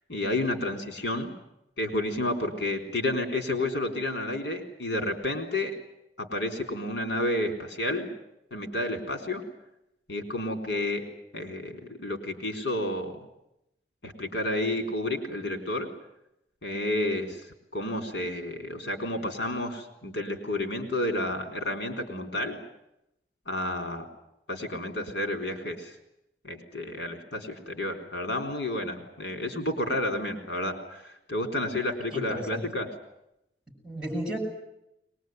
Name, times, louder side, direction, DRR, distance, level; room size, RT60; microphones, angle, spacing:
voice 1, 0.1-1.3 1.8-5.8 6.2-8.1 8.5-9.4 10.1-11.1 11.3-13.2 14.0-15.9 16.6-22.6 23.5-24.0 24.5-25.9 26.4-32.9, left 1 dB, 80° left, 4 dB, 4.0 m, -31 dB
voice 2, 32.1-32.6 33.8-34.4, equal, 5° right, 1 dB, 7.3 m, -33 dB
22.5 x 21.0 x 9.4 m, 0.83 s
head